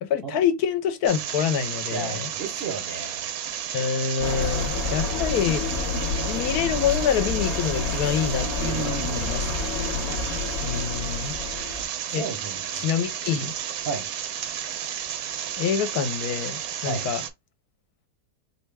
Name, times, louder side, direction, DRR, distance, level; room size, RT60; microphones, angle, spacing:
voice 1, 0.0-2.3 3.7-5.6 6.3-9.5 10.6-11.3 12.1-12.2 12.7-13.5 15.6-17.2, left 8 dB, 75° left, 1.1 m, -26 dB
sound 1, 1.1-17.3, right 9 dB, 70° right, 0.9 m, -32 dB
voice 2, 1.9-3.2 8.6-9.3 12.2-12.6 13.9-14.1 16.9-17.1, right 4 dB, 55° right, 0.7 m, -32 dB
sound 2, 4.2-11.8, left 4 dB, 50° left, 1.0 m, -29 dB
4.5 x 2.1 x 3.3 m
omnidirectional pair, 1.7 m